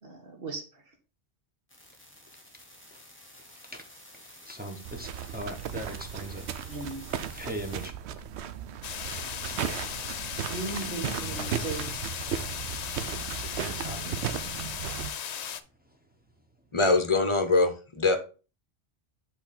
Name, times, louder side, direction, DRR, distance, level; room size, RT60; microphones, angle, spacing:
voice 1, 0.0-1.0 6.7-7.1 10.5-12.0, right 3 dB, 60° right, 1.8 m, -37 dB
sound 1, 1.7-7.9, left 1 dB, 10° left, 1.7 m, -50 dB
voice 2, 4.4-6.5 7.3-7.9 8.7-9.9 11.2-11.8 13.4-15.4, right 1 dB, 10° right, 0.9 m, -41 dB
sound 2, 4.8-15.1, right 9 dB, 90° right, 0.9 m, -36 dB
sound 3, 8.8-15.6, left 8 dB, 55° left, 0.5 m, -37 dB
voice 3, 16.7-18.2, left 3 dB, 30° left, 0.8 m, -23 dB
7.9 x 3.6 x 4.2 m
omnidirectional pair, 1.1 m